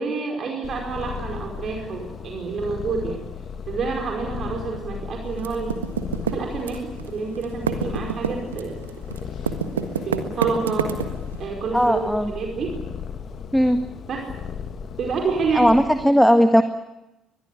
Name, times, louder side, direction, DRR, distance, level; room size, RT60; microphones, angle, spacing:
voice 1, 0.0-3.2 3.7-5.7 6.2-8.8 10.0-11.0 11.4-12.0 12.3-12.8 14.1-14.3 15.0-15.7, right 4 dB, 50° right, 1 dB, 5.0 m, -28 dB
Purr, 0.6-16.0, left 6 dB, 50° left, 2.1 m, -36 dB
Typing, 5.4-7.1 7.4-11.4, right 7 dB, 80° right, 1.5 m, -26 dB
voice 2, 11.7-12.3 13.5-13.8 15.5-16.6, equal, ahead, 8 dB, 1.8 m, -17 dB
23.0 x 21.5 x 9.9 m, 0.95 s
figure-of-eight pair, 45°, 0 cm